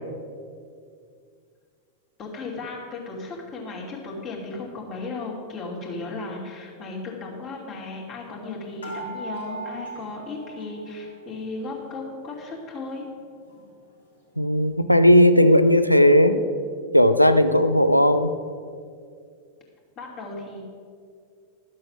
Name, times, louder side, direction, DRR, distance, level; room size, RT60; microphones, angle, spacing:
voice 1, 2.2-13.0 20.0-20.6, left 3 dB, 35° left, -1 dB, 2.7 m, -35 dB
sound 1, 8.8-11.4 11.6-12.6 13.1-13.2 13.5-13.6, right 2 dB, 75° left, 2.7 m, -39 dB
voice 2, 14.4-16.4 16.9-18.3, left 1 dB, 90° left, 10 dB, 0.5 m, -16 dB
12.5 x 7.5 x 6.0 m, 2.2 s
figure-of-eight pair, 90°, 0 cm